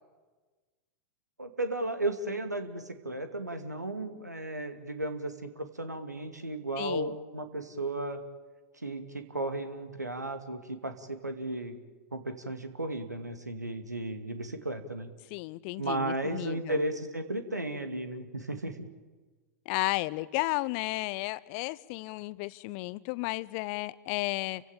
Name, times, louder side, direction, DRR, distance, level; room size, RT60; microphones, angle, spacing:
voice 1, 1.4-8.2 8.8-11.8 12.1-15.1 15.8-18.9, right 1 dB, 85° right, 8 dB, 2.2 m, -34 dB
voice 2, 6.8-7.1 15.3-16.8 19.7-24.6, left 21 dB, 45° left, 20 dB, 0.8 m, -33 dB
30.0 x 16.5 x 8.7 m, 1.3 s
figure-of-eight pair, 95°, 9 cm